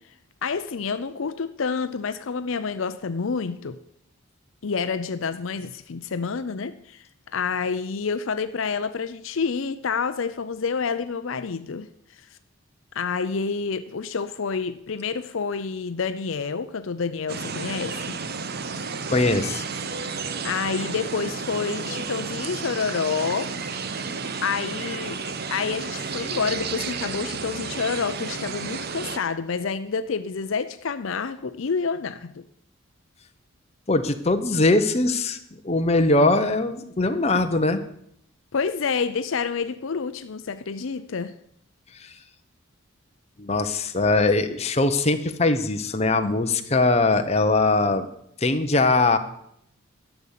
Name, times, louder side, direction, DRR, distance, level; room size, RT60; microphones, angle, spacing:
voice 1, 0.4-3.8 4.6-7.1 7.3-11.9 12.9-18.2 20.4-23.5 24.4-32.4 38.5-41.3, left 5 dB, 65° left, 11 dB, 0.5 m, -28 dB
sound 1, 17.3-29.2, right 5 dB, 45° right, 0.8 m, -32 dB
voice 2, 19.1-19.6 33.9-37.8 41.9-42.1 43.4-48.1 48.4-49.2, left 2 dB, 30° left, 7 dB, 0.9 m, -21 dB
12.5 x 7.1 x 8.3 m, 0.72 s
head